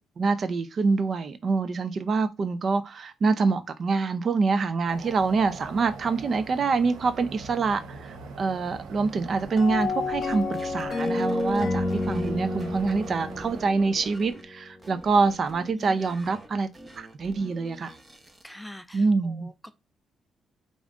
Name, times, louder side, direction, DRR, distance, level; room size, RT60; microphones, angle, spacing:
voice 1, 0.2-16.7 17.0-17.9 18.9-19.5, right 4 dB, 45° right, 0.5 m, -26 dB
sound 1, 4.8-13.6, right 4 dB, 80° right, 0.7 m, -42 dB
sound 2, 9.4-12.3 12.6-14.4 14.8-18.5, right 1 dB, 20° right, 0.9 m, -47 dB
sound 3, 9.6-14.7, left 3 dB, 50° left, 0.9 m, -30 dB
voice 2, 18.4-19.7, left 1 dB, 5° left, 0.5 m, -44 dB
5.1 x 2.6 x 3.6 m
cardioid pair, 90°, 0 cm